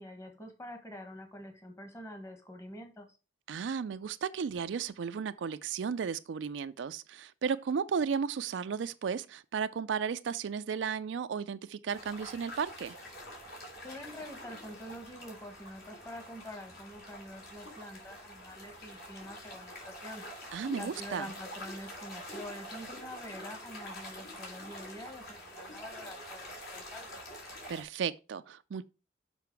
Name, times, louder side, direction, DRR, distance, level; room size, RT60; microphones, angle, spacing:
voice 1, 0.0-3.1 13.8-20.2 20.8-27.1, equal, 15° left, 1.4 m, -46 dB
voice 2, 3.5-13.0 20.5-21.3 27.7-28.8, right 6 dB, 85° right, 0.4 m, -34 dB
sound 1, 11.9-27.8, left 1 dB, 60° left, 3.1 m, -46 dB
6.8 x 5.5 x 4.6 m
head